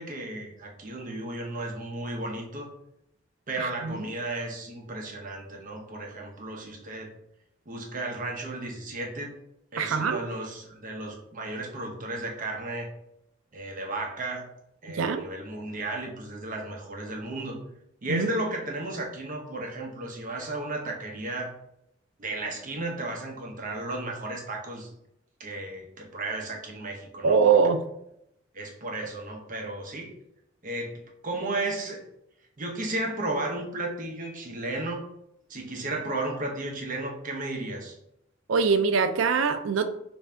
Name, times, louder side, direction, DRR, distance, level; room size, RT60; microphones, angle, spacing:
voice 1, 0.0-2.7 3.5-7.1 7.7-9.3 9.7-12.9 13.5-14.5 14.8-17.6 18.0-21.5 22.2-24.9 25.4-27.6 28.5-30.1 30.6-32.0 32.6-35.1 35.5-37.9, right 2 dB, 45° right, 0 dB, 0.7 m, -34 dB
voice 2, 9.8-10.2 14.9-15.2 18.1-18.3 27.2-27.8 38.5-39.9, right 5 dB, 85° right, 9 dB, 0.4 m, -23 dB
3.5 x 2.6 x 3.3 m, 0.79 s
head